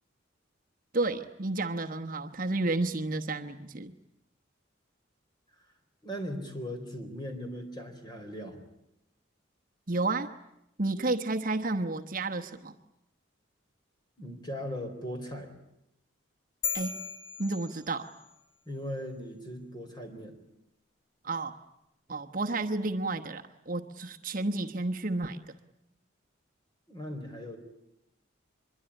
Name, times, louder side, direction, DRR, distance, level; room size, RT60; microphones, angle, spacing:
voice 1, 0.9-3.9 9.9-10.3 10.8-12.7 16.7-16.9 17.4-18.1 21.2-21.5 22.1-25.4, right 2 dB, 45° right, 5 dB, 1.0 m, -31 dB
voice 2, 6.0-8.6 14.2-15.5 18.7-20.4 26.9-27.6, equal, 20° left, 5 dB, 4.1 m, -38 dB
sound 1, 16.6-18.4, left 5 dB, 85° left, 5.2 m, -36 dB
25.0 x 23.0 x 10.0 m, 0.84 s
head